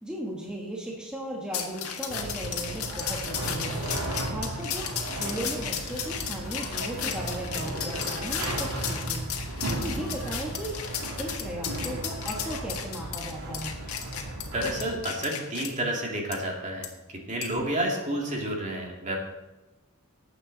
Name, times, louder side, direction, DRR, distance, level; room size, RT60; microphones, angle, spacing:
voice 1, 0.0-10.8 11.2-13.8, right 1 dB, 5° right, -3 dB, 1.5 m, -37 dB
sound 1, 1.5-15.7 16.3-16.4 16.8-16.9 17.4-17.6, left 8 dB, 70° left, 1.7 m, -34 dB
sound 2, 2.1-15.0, right 1 dB, 75° right, 2.5 m, -35 dB
voice 2, 14.5-16.9 17.3-19.2, right 1 dB, 35° right, 0 dB, 2.4 m, -30 dB
19.5 x 8.1 x 4.1 m, 1.1 s
head